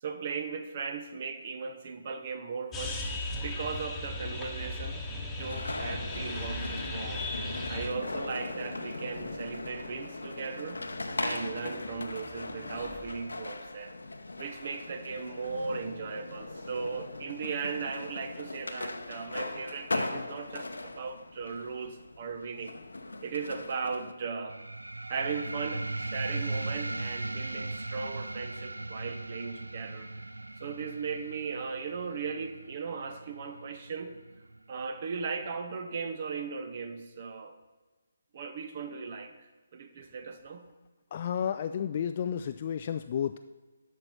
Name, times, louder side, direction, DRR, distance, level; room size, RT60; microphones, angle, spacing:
voice 1, 0.0-3.0 3.4-7.2 7.7-10.8 11.2-13.9 14.4-22.8 23.2-24.6 25.1-30.1 30.6-34.2 34.7-37.5 38.3-39.3 39.7-40.7, right 5 dB, 40° right, 8 dB, 0.8 m, -37 dB
sound 1, 2.7-13.1, left 2 dB, 5° left, 1.3 m, -39 dB
sound 2, 5.4-24.1, left 2 dB, 70° left, 0.8 m, -39 dB
sound 3, 24.5-35.5, right 2 dB, 80° right, 0.3 m, -38 dB
voice 2, 41.1-43.4, left 8 dB, 35° left, 8 dB, 0.3 m, -32 dB
11.5 x 6.5 x 4.5 m, 1.3 s
figure-of-eight pair, 145°, 0 cm